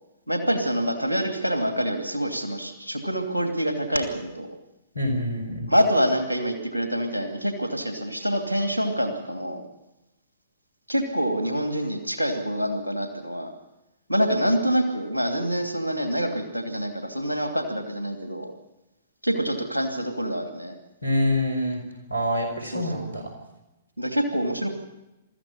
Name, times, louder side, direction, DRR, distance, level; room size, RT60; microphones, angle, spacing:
voice 1, 0.3-4.5 5.7-9.6 10.9-13.5 14.1-18.5 19.2-20.7 22.6-23.1 24.0-24.7, equal, 85° right, 4 dB, 2.6 m, -26 dB
voice 2, 4.9-5.7 21.0-21.8 22.1-23.2, left 1 dB, 85° left, 4 dB, 4.7 m, -26 dB
23.0 x 14.0 x 9.7 m, 0.97 s
figure-of-eight pair, 115°, 0 cm